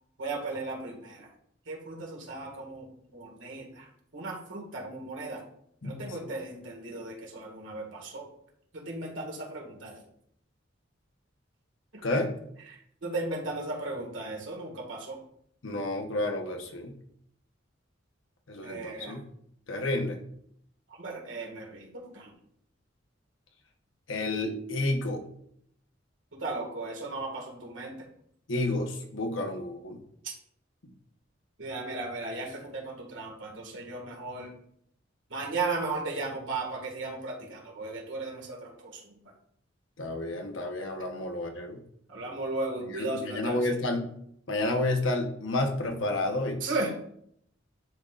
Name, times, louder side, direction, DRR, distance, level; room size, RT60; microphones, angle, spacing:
voice 1, 0.2-1.3 1.7-2.9 3.1-3.9 4.1-5.4 5.8-8.3 8.7-10.0 11.9-12.0 12.7-15.2 18.6-19.2 21.0-22.3 26.4-27.9 31.6-34.5 35.3-39.0 42.1-43.6 46.6-46.9, right 3 dB, 85° right, 0 dB, 1.8 m, -36 dB
voice 2, 15.6-16.9 18.5-19.2 19.7-20.2 24.1-25.2 28.5-30.0 40.0-41.8 42.9-44.1 44.5-46.6, left 2 dB, 90° left, 4 dB, 1.0 m, -30 dB
10.5 x 3.8 x 2.5 m, 0.70 s
head